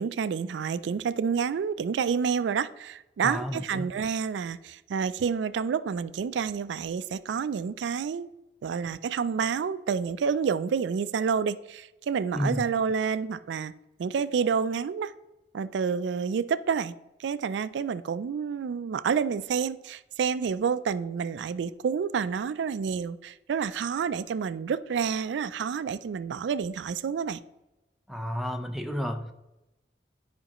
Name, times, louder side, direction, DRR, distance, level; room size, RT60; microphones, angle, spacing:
voice 1, 0.0-8.3 8.6-13.7 14.0-15.1 15.5-16.9 17.2-27.4, right 6 dB, 85° right, 15 dB, 0.3 m, -29 dB
voice 2, 3.2-3.9 12.3-12.6 28.1-29.3, equal, ahead, 4 dB, 0.5 m, -31 dB
11.0 x 5.1 x 3.0 m, 0.96 s
head